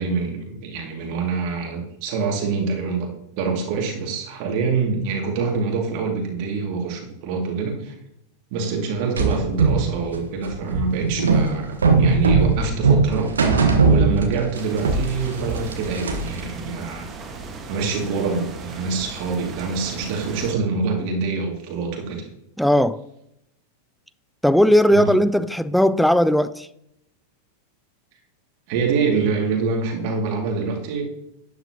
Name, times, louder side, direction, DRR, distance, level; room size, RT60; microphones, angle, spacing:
voice 1, 0.0-7.9 8.5-13.3 13.9-17.1 17.7-22.3 24.9-25.1 28.7-31.0, right 4 dB, 45° right, 2.4 m, -25 dB
sound 1, 9.2-14.6 14.8-16.4, right 4 dB, 70° right, 1.4 m, -19 dB
sound 2, 14.5-20.5, right 3 dB, 25° right, 1.6 m, -36 dB
voice 2, 22.6-23.0 24.4-26.7, equal, ahead, 0.3 m, -17 dB
12.0 x 9.5 x 2.9 m
figure-of-eight pair, 90°, 0 cm